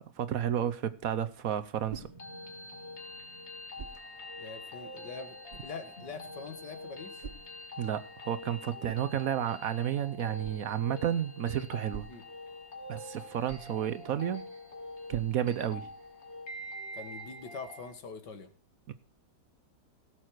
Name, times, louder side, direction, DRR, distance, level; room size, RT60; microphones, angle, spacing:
voice 1, 0.0-2.1 7.8-12.1 12.9-14.5 15.1-15.9 18.9-19.0, right 10 dB, 60° right, 1.1 m, -32 dB
sound 1, 1.2-16.1, right 5 dB, 35° right, 0.7 m, -53 dB
sound 2, 2.0-17.9, left 1 dB, 40° left, 2.5 m, -45 dB
voice 2, 4.4-7.2 12.1-12.2 16.9-18.5, left 5 dB, 80° left, 2.3 m, -44 dB
17.0 x 7.6 x 4.6 m
omnidirectional pair, 1.8 m